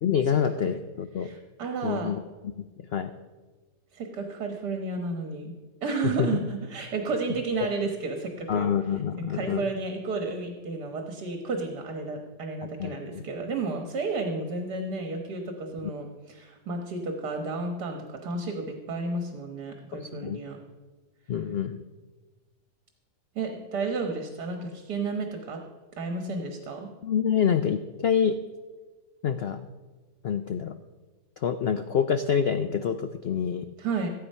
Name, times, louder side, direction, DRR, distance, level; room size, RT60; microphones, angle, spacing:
voice 1, 0.0-1.3 1.8-2.5 2.8-3.1 6.0-6.3 8.5-9.6 12.8-13.0 19.9-20.4 21.3-21.8 27.0-28.4 29.2-29.6 30.2-30.7 31.4-33.7, left 7 dB, 90° left, 9 dB, 0.5 m, -27 dB
voice 2, 1.2-2.2 3.9-5.5 5.8-8.7 9.2-20.6 23.4-25.6 26.0-26.9 33.8-34.1, right 3 dB, 75° right, 4 dB, 1.9 m, -32 dB
15.5 x 8.8 x 5.5 m, 1.3 s
omnidirectional pair, 1.8 m